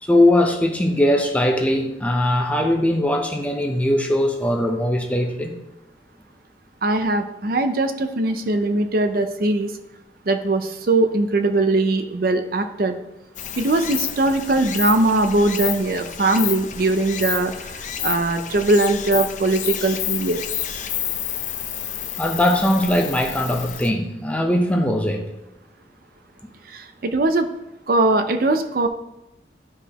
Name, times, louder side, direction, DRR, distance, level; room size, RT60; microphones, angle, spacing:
voice 1, 0.0-5.5 22.2-25.3, left 1 dB, 10° left, 2 dB, 0.7 m, -20 dB
voice 2, 6.8-9.7 10.3-13.0 13.6-20.4 26.7-27.5 27.9-28.9, right 2 dB, 55° right, 8 dB, 0.5 m, -20 dB
Stream, 13.3-23.9, left 9 dB, 45° left, 0.5 m, -30 dB
11.5 x 5.0 x 2.9 m, 0.90 s
head